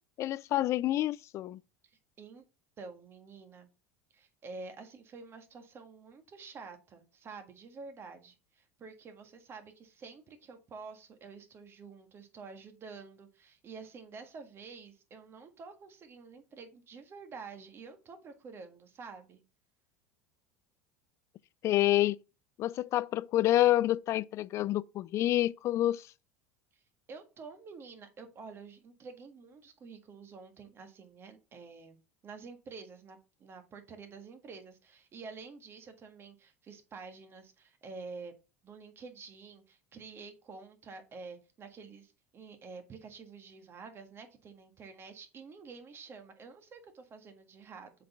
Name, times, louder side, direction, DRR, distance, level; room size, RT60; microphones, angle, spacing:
voice 1, 0.2-1.6 21.6-22.2 22.6-26.1, left 14 dB, 45° left, 0.4 m, -28 dB
voice 2, 1.8-2.4 2.8-3.7 4.1-19.4 26.7-26.8 27.1-32.0 32.2-38.3 38.6-47.9, right 4 dB, 35° right, 1.6 m, -49 dB
7.4 x 4.1 x 4.0 m
hypercardioid pair, 75°, 7 cm